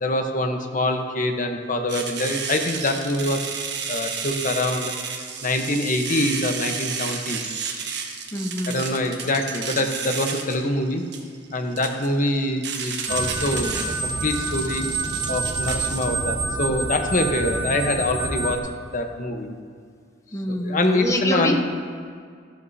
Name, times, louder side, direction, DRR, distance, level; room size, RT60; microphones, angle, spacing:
voice 1, 0.0-3.5 3.9-4.9 5.4-7.5 8.7-11.1 11.5-14.8 15.3-19.5 20.5-21.6, left 1 dB, 45° left, 5 dB, 1.0 m, -25 dB
sound 1, 1.9-16.1, right 6 dB, 65° right, 1.3 m, -32 dB
voice 2, 8.3-8.8 20.3-21.6, left 1 dB, 15° left, 4 dB, 0.8 m, -26 dB
sound 2, 13.1-18.6, right 3 dB, 25° right, 1.2 m, -27 dB
15.5 x 11.5 x 2.8 m, 2.1 s
head